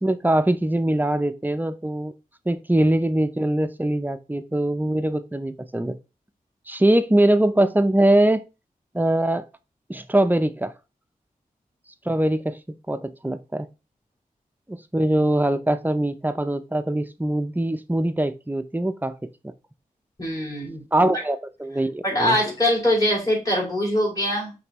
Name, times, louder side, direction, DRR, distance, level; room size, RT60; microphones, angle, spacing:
voice 1, 0.0-2.1 2.5-6.0 6.7-8.4 8.9-9.4 9.9-10.7 12.1-13.7 14.7-19.3 20.9-22.4, right 1 dB, 10° right, 0.5 m, -22 dB
voice 2, 20.2-20.8 22.0-24.5, left 1 dB, 25° left, 2.6 m, -22 dB
5.1 x 3.3 x 3.0 m
cardioid pair, 55°, 15 cm